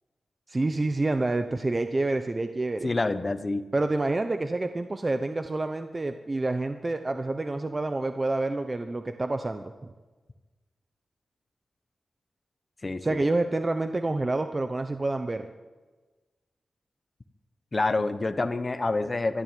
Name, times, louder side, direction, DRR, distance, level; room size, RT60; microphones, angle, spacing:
voice 1, 0.5-2.9 3.7-9.7 13.0-15.5, right 2 dB, 25° right, 8 dB, 0.9 m, -28 dB
voice 2, 2.8-3.6 12.8-13.2 17.7-19.4, left 3 dB, 30° left, 11 dB, 1.1 m, -27 dB
24.0 x 12.5 x 9.2 m, 1.3 s
wide cardioid pair, 145°, 0 cm